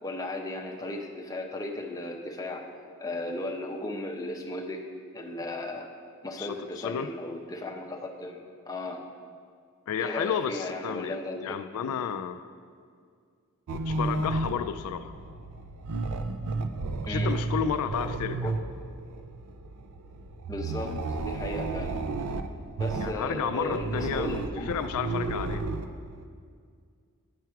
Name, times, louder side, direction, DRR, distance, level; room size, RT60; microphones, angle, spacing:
voice 1, 0.0-2.7 3.0-4.8 5.1-5.9 6.2-9.0 10.0-11.6 17.0-17.3 18.4-18.5 20.5-22.0 22.8-24.7, left 1 dB, 15° left, 1 dB, 0.6 m, -35 dB
voice 2, 6.4-7.1 9.9-12.4 13.7-15.1 17.0-18.5 23.0-25.7, left 7 dB, 70° left, 13 dB, 0.3 m, -32 dB
sound 1, 13.7-26.3, right 3 dB, 75° right, 0.4 m, -33 dB
9.3 x 4.7 x 4.6 m, 2.1 s
head